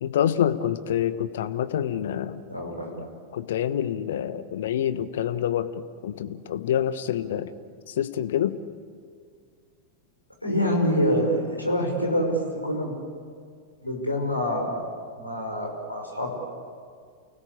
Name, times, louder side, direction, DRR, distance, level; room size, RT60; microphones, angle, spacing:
voice 1, 0.0-2.4 3.0-3.1 3.3-5.7 6.0-7.5 8.0-8.5, left 10 dB, 60° left, 13 dB, 1.0 m, -26 dB
voice 2, 2.5-2.9 10.4-12.9 13.8-14.8 15.2-16.3, equal, 85° left, 1 dB, 5.5 m, -26 dB
29.5 x 17.5 x 8.5 m, 2.1 s
figure-of-eight pair, 90°, 0 cm